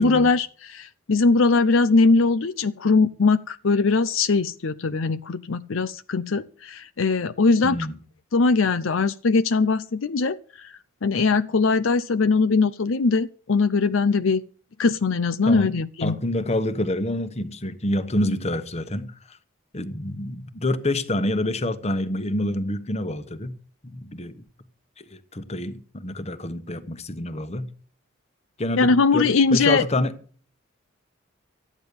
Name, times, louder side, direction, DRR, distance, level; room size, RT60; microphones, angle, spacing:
voice 1, 0.0-7.8 8.3-10.7 11.0-14.4 14.8-16.2 28.8-29.8, left 4 dB, 70° left, 0.6 m, -21 dB
voice 2, 7.6-7.9 15.4-15.7 16.0-19.4 19.7-23.5 23.8-24.4 25.0-27.7 28.6-30.2, left 1 dB, 30° left, 1.2 m, -27 dB
14.0 x 9.8 x 6.9 m
head